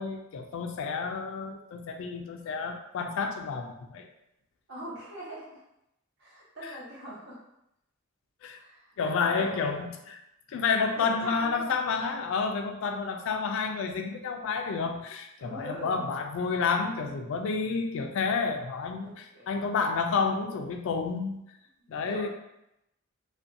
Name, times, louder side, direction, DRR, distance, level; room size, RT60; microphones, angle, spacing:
voice 1, 0.0-4.1 8.4-8.6 9.0-10.2 10.5-21.4 21.9-22.3, left 5 dB, 65° left, 4 dB, 0.3 m, -30 dB
voice 2, 4.7-5.6 6.2-7.4 8.6-9.9 11.0-11.8 15.4-16.1 19.0-19.6 21.8-22.3, right 1 dB, 55° right, -6 dB, 0.9 m, -42 dB
2.5 x 2.2 x 2.6 m, 0.83 s
head